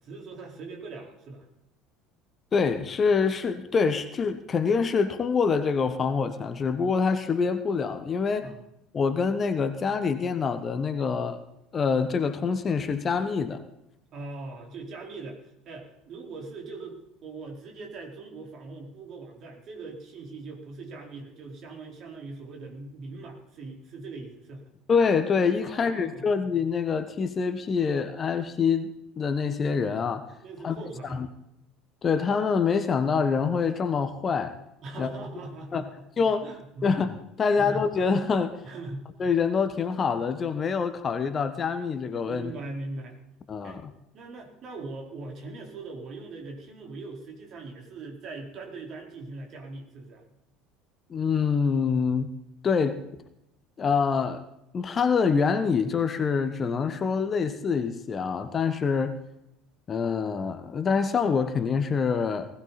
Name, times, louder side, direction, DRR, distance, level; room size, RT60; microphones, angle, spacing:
voice 1, 0.0-1.5 8.4-8.6 14.1-24.6 25.6-26.3 30.4-31.3 34.8-36.1 36.4-36.9 37.5-37.9 38.6-39.1 42.2-43.2 43.6-43.8 44.1-50.2, right 3 dB, 45° right, 1 dB, 4.5 m, -41 dB
voice 2, 2.5-8.5 8.9-11.4 11.7-13.6 24.9-30.3 30.6-30.8 31.1-31.3 32.0-34.5 35.0-35.1 35.7-35.8 36.2-36.5 36.8-38.6 39.2-42.5 43.5-43.9 51.1-52.3 52.6-53.0 53.8-54.4 54.7-59.2 59.9-62.5, left 5 dB, 30° left, 11 dB, 1.4 m, -25 dB
20.0 x 16.0 x 4.3 m, 0.81 s
figure-of-eight pair, 65°, 0 cm